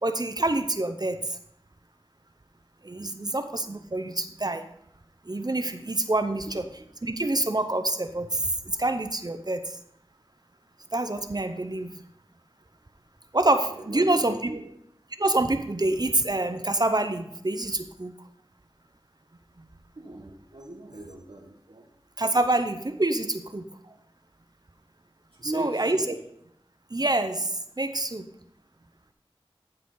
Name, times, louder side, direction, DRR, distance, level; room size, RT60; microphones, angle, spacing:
voice 1, 0.0-1.2 2.8-4.6 5.3-6.6 7.0-8.4 8.7-9.7 10.9-11.9 13.3-14.5 15.2-18.1 22.2-23.6 25.4-26.0 26.9-27.5 27.8-28.3, right 2 dB, 45° right, 8 dB, 0.7 m, -26 dB
voice 2, 6.5-6.9 13.7-14.7 19.9-21.9 23.8-23.9 25.4-26.1, right 2 dB, 75° right, -2 dB, 1.2 m, -38 dB
14.5 x 5.0 x 3.9 m, 0.73 s
wide cardioid pair, 45°, 10 cm